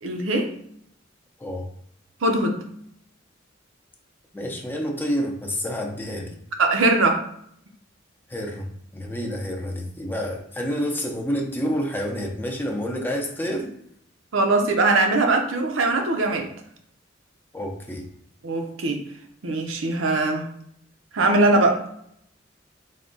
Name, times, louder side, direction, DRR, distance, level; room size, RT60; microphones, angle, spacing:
voice 1, 0.0-0.5 2.2-2.6 6.6-7.2 14.3-16.5 18.4-19.0 19.4-20.5 21.1-21.8, right 2 dB, 85° right, 3 dB, 0.6 m, -21 dB
voice 2, 4.3-6.3 8.3-8.7 8.9-13.7 17.5-18.1, equal, 10° left, 1 dB, 0.5 m, -28 dB
3.6 x 2.2 x 3.8 m, 0.69 s
head